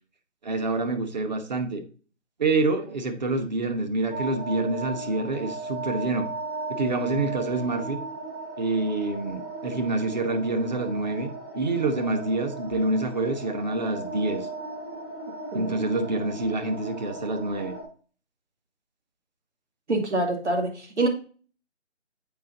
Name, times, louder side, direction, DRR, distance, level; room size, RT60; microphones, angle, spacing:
voice 1, 0.4-1.8 2.4-6.3 6.7-8.0 8.6-14.5 15.5-17.8, right 2 dB, 40° right, 6 dB, 1.0 m, -27 dB
sound 1, 4.1-17.8, right 2 dB, 5° right, 0.7 m, -36 dB
voice 2, 15.5-15.8 19.9-21.1, right 2 dB, 70° right, 3 dB, 2.2 m, -26 dB
7.7 x 5.1 x 3.8 m, 0.39 s
figure-of-eight pair, 160°, 35 cm